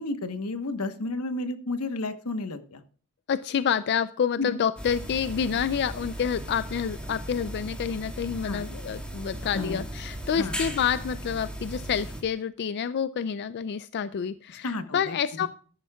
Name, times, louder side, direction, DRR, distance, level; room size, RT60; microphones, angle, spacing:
voice 1, 0.0-2.8 4.4-4.5 8.4-8.6 9.5-9.9 10.3-10.6 14.6-15.5, left 2 dB, 85° left, 10 dB, 1.1 m, -32 dB
voice 2, 3.3-15.5, left 7 dB, 50° left, 14 dB, 0.4 m, -28 dB
sound 1, 4.8-12.2, right 1 dB, 5° left, 2.0 m, -37 dB
13.5 x 10.5 x 2.3 m, 0.42 s
head